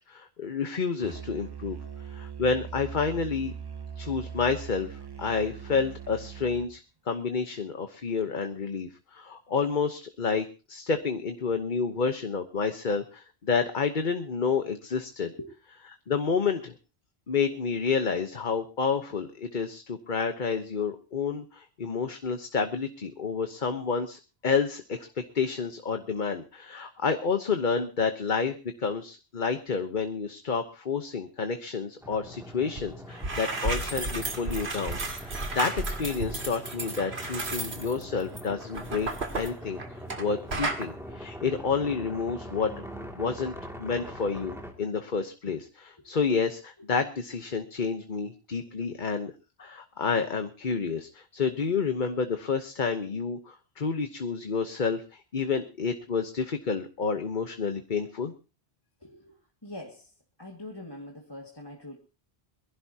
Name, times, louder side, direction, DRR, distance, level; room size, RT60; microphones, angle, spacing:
voice 1, 0.1-3.5 4.0-6.8 7.1-15.3 16.1-16.8 17.3-42.9 43.2-49.3 49.6-58.3, left 5 dB, 50° left, 7 dB, 1.2 m, -29 dB
Musical instrument, 1.0-6.7, right 7 dB, 25° right, 0.7 m, -41 dB
sound 1, 32.0-44.7, equal, ahead, 2.4 m, -42 dB
sound 2, 32.8-32.9 33.1-40.2 40.5-40.9, right 2 dB, 80° right, 2.3 m, -33 dB
voice 2, 59.0-60.1 60.4-62.0, left 1 dB, 25° left, 1 dB, 1.9 m, -43 dB
22.5 x 16.0 x 2.8 m, 0.32 s
omnidirectional pair, 1.1 m